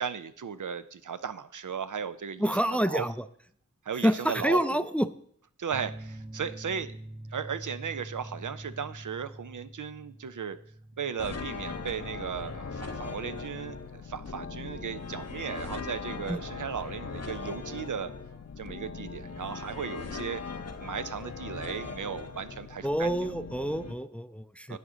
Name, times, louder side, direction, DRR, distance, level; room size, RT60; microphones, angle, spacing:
voice 1, 0.0-3.1 3.8-4.9 5.6-7.0 7.3-10.6 11.0-18.1 18.6-20.4 20.8-23.2 24.7-24.8, right 7 dB, 80° right, 12 dB, 0.5 m, -36 dB
voice 2, 2.4-3.1 4.0-5.1 16.3-16.4 22.8-24.8, equal, 5° left, 13 dB, 0.4 m, -27 dB
sound 1, 5.7-16.9, right 1 dB, 30° right, 1.2 m, -47 dB
sound 2, 11.2-23.9, left 4 dB, 55° left, 0.7 m, -39 dB
11.0 x 8.1 x 3.8 m, 0.63 s
wide cardioid pair, 50°, 30 cm